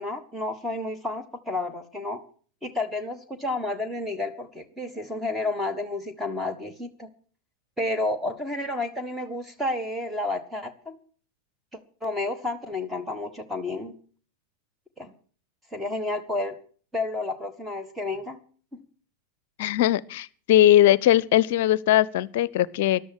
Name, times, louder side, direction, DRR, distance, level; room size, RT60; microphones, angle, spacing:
voice 1, 0.0-2.2 2.6-7.1 7.8-11.0 11.7-13.9 15.0-15.1 15.7-16.6 16.9-18.4 18.7-18.8, left 2 dB, 5° right, 7 dB, 1.5 m, -31 dB
voice 2, 19.6-23.0, left 12 dB, 50° left, 22 dB, 0.7 m, -20 dB
13.5 x 12.0 x 6.3 m, 0.43 s
figure-of-eight pair, 90°, 0 cm